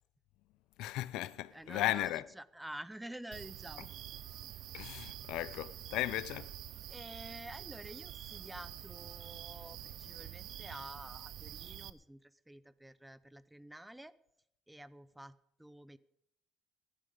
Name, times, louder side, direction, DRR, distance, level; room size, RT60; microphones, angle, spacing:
voice 1, 0.8-2.3 4.7-6.6, left 16 dB, 90° left, 0.5 m, -36 dB
voice 2, 1.5-3.9 4.4-4.5 6.9-14.1 14.7-16.0, right 1 dB, 5° right, 0.5 m, -49 dB
sound 1, 3.3-11.9, right 12 dB, 65° right, 0.7 m, -47 dB
15.5 x 11.5 x 5.1 m
cardioid pair, 145°, 0 cm